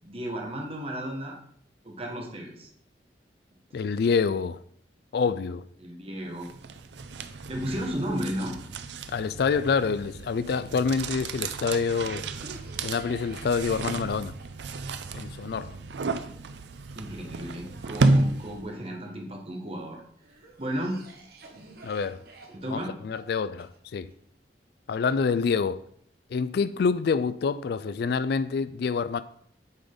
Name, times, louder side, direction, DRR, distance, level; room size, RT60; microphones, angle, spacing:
voice 1, 0.0-1.4 1.8-2.7 5.8-6.5 7.5-8.5 16.9-20.0 20.6-21.0 22.6-22.9, equal, 35° right, 1.4 m, -33 dB
voice 2, 3.7-4.6 5.1-5.6 9.1-12.3 12.8-14.3 15.1-15.8 21.8-22.2 22.7-24.1 24.9-25.8 26.3-29.2, left 5 dB, 60° left, 0.3 m, -27 dB
sound 1, 6.4-18.8, right 2 dB, 80° right, 0.5 m, -32 dB
Cough, 10.4-19.6 20.2-24.1, right 2 dB, 60° right, 1.3 m, -52 dB
8.2 x 5.1 x 3.9 m
head